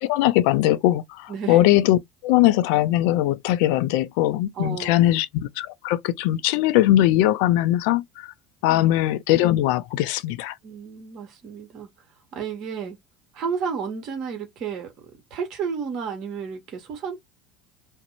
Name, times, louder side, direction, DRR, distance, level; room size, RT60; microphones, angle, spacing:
voice 1, 0.0-8.3 8.6-10.5, left 14 dB, 75° left, 0.3 m, -20 dB
voice 2, 1.3-1.6 4.5-5.1 8.7-8.9 10.6-11.9 12.3-13.0 13.3-14.9 15.3-17.2, right 6 dB, 50° right, 1.0 m, -32 dB
2.5 x 2.0 x 2.8 m
supercardioid pair, 95°, 0 cm